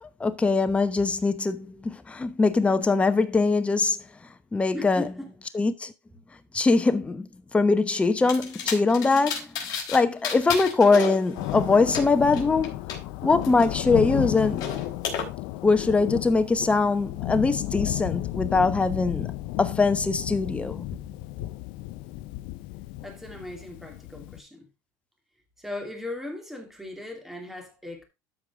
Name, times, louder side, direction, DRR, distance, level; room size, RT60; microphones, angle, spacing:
voice 1, 0.0-4.0 4.5-5.1 5.5-5.9 6.5-9.5 9.9-12.8 13.2-14.6 15.6-19.3 19.6-20.9, left 3 dB, 15° left, 0.9 m, -22 dB
voice 2, 4.7-5.3 23.0-24.7 25.6-28.0, left 1 dB, 5° right, 2.7 m, -38 dB
sound 1, 8.3-10.0 10.2-13.0 13.4-15.2, left 7 dB, 50° left, 3.8 m, -33 dB
Thunder, 11.3-24.4, left 17 dB, 65° left, 0.7 m, -33 dB
13.0 x 4.8 x 3.6 m
supercardioid pair, 120°, 9 cm